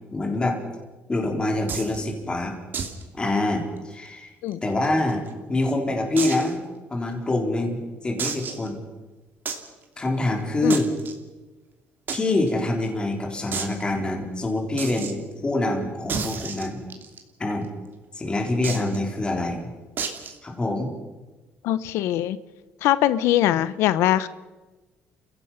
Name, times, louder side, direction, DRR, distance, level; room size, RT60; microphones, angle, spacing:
voice 1, 0.1-0.6 1.1-2.6 3.1-4.3 4.6-5.2 5.5-6.6 6.9-8.8 10.0-10.9 12.1-16.8 17.4-17.7 18.1-19.7 20.4-20.9, left 2 dB, 20° left, 1 dB, 3.9 m, -25 dB
sound 1, 1.7-2.0 2.7-3.0 3.3-3.4 3.8-3.9 4.5-5.3 6.2-6.5 7.1-7.2 8.2-8.7 9.5-9.7 10.7-11.1 12.1-12.2 12.5-12.6 12.8-12.9 13.5-13.7 14.8-15.1 16.1-17.2 18.6-19.0 20.0-20.4, right 5 dB, 50° right, 2.8 m, -30 dB
voice 2, 21.6-22.4 22.8-24.3, left 13 dB, 90° left, 15 dB, 0.8 m, -22 dB
30.0 x 16.0 x 5.7 m, 1.2 s
cardioid pair, 115°, 4 cm